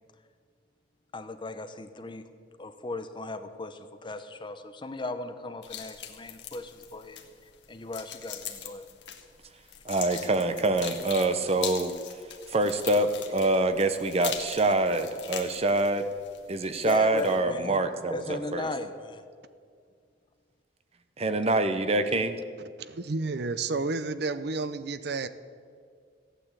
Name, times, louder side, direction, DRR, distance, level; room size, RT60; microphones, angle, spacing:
voice 1, 1.1-2.3 2.6-8.9 16.8-17.8 18.1-19.2, left 2 dB, 25° left, 9 dB, 0.8 m, -37 dB
sound 1, 5.6-17.4, left 9 dB, 80° left, 1.4 m, -42 dB
voice 2, 9.8-11.9 12.5-16.1 16.5-18.7 21.2-22.4, right 2 dB, 35° right, 9 dB, 0.8 m, -25 dB
voice 3, 22.8-25.3, right 3 dB, 65° right, 13 dB, 0.6 m, -31 dB
14.5 x 9.1 x 8.2 m, 2.2 s
head